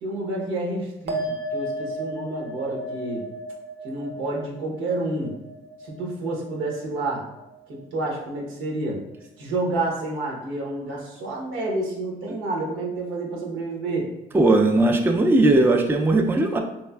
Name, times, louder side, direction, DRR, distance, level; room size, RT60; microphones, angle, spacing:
voice 1, 0.0-3.2 3.8-5.4 5.8-7.2 7.7-9.0 9.4-14.1, right 2 dB, 90° right, -2 dB, 0.9 m, -29 dB
sound 1, 1.1-7.8 8.0-8.7, right 1 dB, 55° right, 0.6 m, -35 dB
voice 2, 14.3-16.6, right 2 dB, 10° right, 3 dB, 0.3 m, -18 dB
3.4 x 3.1 x 2.3 m, 0.91 s
cardioid pair, 90°, 20 cm